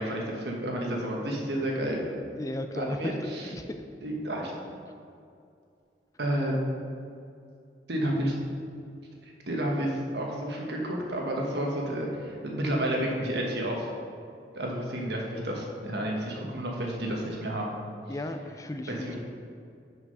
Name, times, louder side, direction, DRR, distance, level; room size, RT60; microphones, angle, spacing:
voice 1, 0.0-2.2 2.7-3.5 4.0-4.5 6.2-6.5 7.9-8.3 9.5-13.9 14.5-17.7 18.9-19.2, right 1 dB, 75° right, -1 dB, 1.3 m, -30 dB
voice 2, 2.3-3.7 18.1-19.2, left 1 dB, 20° left, 7 dB, 0.4 m, -35 dB
5.9 x 5.7 x 5.4 m, 2.4 s
head